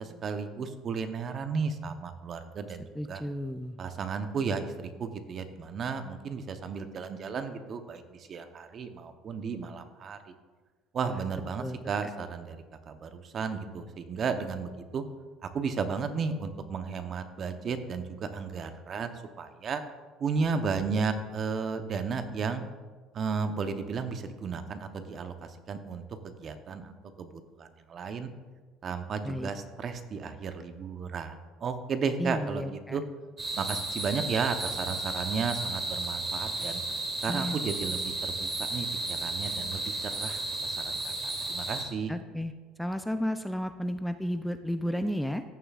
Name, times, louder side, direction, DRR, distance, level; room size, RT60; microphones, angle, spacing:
voice 1, 0.0-3.2 3.8-10.3 10.9-12.6 12.9-15.0 15.4-19.8 20.2-22.6 23.1-28.3 28.8-33.0 33.6-36.8 37.2-42.1, right 5 dB, 45° right, 9 dB, 0.8 m, -34 dB
voice 2, 3.0-3.8 11.0-11.2 11.6-12.1 29.2-29.5 32.2-33.0 37.3-37.6 42.1-42.5 42.8-45.4, equal, ahead, 9 dB, 0.4 m, -33 dB
sound 1, 33.4-41.8, right 2 dB, 30° right, 2.8 m, -33 dB
14.5 x 6.8 x 2.4 m, 1.4 s
supercardioid pair, 90°, 0 cm